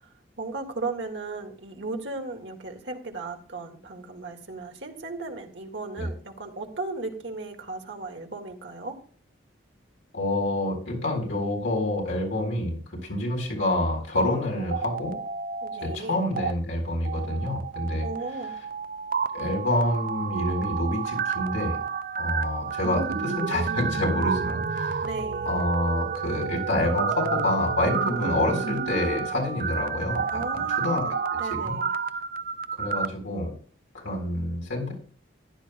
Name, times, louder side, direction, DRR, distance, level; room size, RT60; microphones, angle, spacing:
voice 1, 0.4-9.0 15.6-16.2 18.0-18.6 25.0-25.5 30.3-31.1 31.4-31.9, right 3 dB, 65° right, 2 dB, 1.9 m, -36 dB
voice 2, 10.1-15.2 15.8-18.1 19.3-21.8 22.2-25.1 25.4-31.0 31.5-31.8 32.7-33.5 33.9-34.9, left 1 dB, 90° left, -1 dB, 4.1 m, -27 dB
sound 1, 14.6-16.0 16.2-16.5 17.0-33.1, right 5 dB, 45° right, 0.4 m, -30 dB
15.0 x 10.5 x 2.2 m, 0.43 s
head